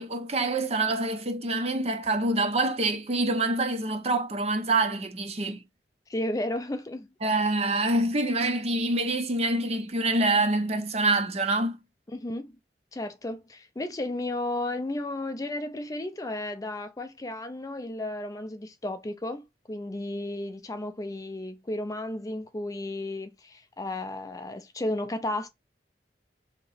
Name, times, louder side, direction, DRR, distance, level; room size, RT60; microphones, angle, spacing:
voice 1, 0.0-5.6 7.2-11.8, right 2 dB, 35° right, 0.6 m, -26 dB
voice 2, 6.1-7.1 12.1-12.5 12.9-25.5, left 1 dB, 20° left, 0.4 m, -33 dB
2.9 x 2.8 x 4.0 m
head